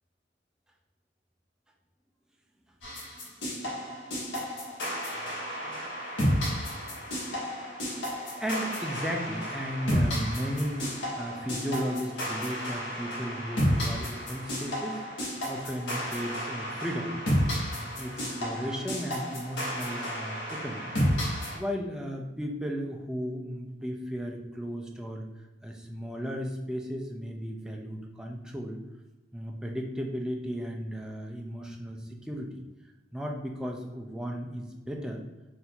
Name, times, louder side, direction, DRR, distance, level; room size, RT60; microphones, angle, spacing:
sound 1, 2.8-21.6, equal, 75° left, 1.2 m, -32 dB
voice 1, 3.2-4.2 5.2-5.9 6.1-7.3 8.4-10.9 11.2-17.1 17.7-20.9 21.2-25.3 25.6-28.8 29.3-32.5 33.1-35.2, equal, 5° right, 1 dB, 0.5 m, -35 dB
4.0 x 2.7 x 4.3 m, 1.1 s
head